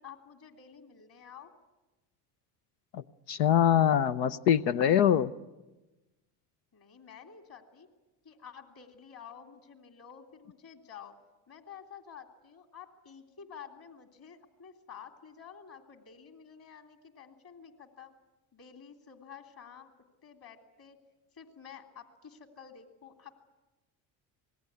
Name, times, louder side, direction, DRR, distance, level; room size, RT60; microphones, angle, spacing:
voice 1, 0.0-1.5 6.7-7.9 8.2-11.1 11.5-18.1 18.5-19.9 20.2-21.0 21.3-23.5, left 7 dB, 45° left, 5 dB, 3.2 m, -50 dB
voice 2, 2.9-5.3, left 9 dB, 85° left, 11 dB, 0.8 m, -24 dB
26.5 x 19.5 x 9.6 m, 1.1 s
supercardioid pair, 75°, 47 cm